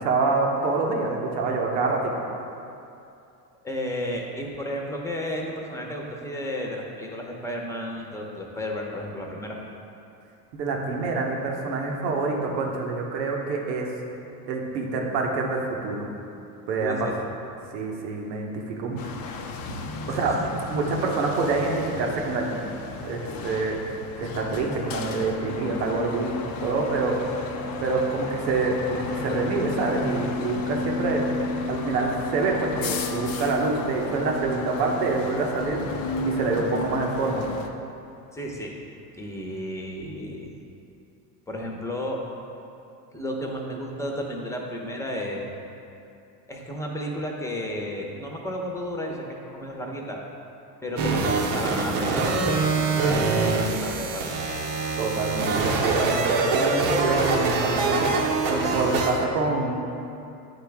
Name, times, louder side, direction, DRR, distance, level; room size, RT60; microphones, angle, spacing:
voice 1, 0.0-2.1 10.5-13.9 14.5-16.1 16.7-17.1 17.7-19.0 19.7-19.8 20.1-20.4 20.7-22.6 23.0-23.8 24.2-27.2 27.8-31.3 31.7-35.8 36.2-37.5 55.0-58.1 58.5-59.8, right 3 dB, 80° right, 0 dB, 1.1 m, -26 dB
voice 2, 3.6-9.6 16.8-17.1 20.1-20.5 38.3-38.7 39.2-40.5 41.5-42.2 43.1-45.5 46.5-50.2 50.8-54.3, equal, 5° left, 0 dB, 1.0 m, -33 dB
sound 1, 19.0-37.7, left 3 dB, 45° left, 0.7 m, -33 dB
sound 2, 51.0-59.3, right 3 dB, 60° right, 0.9 m, -24 dB
9.3 x 3.8 x 3.5 m, 2.7 s
hypercardioid pair, 75°, 48 cm